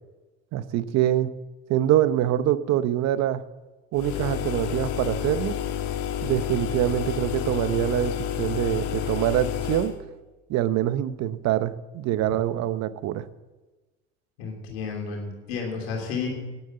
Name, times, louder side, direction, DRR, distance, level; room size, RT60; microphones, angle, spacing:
voice 1, 0.5-1.3 1.7-3.4 3.9-5.5 6.2-9.9 10.5-13.3, right 12 dB, 60° right, 14 dB, 0.9 m, -24 dB
sound 1, 3.9-10.0, left 9 dB, 70° left, 1.5 m, -30 dB
voice 2, 14.4-16.3, left 5 dB, 90° left, -1 dB, 3.1 m, -31 dB
10.5 x 10.0 x 7.7 m, 1.2 s
supercardioid pair, 80°, 30 cm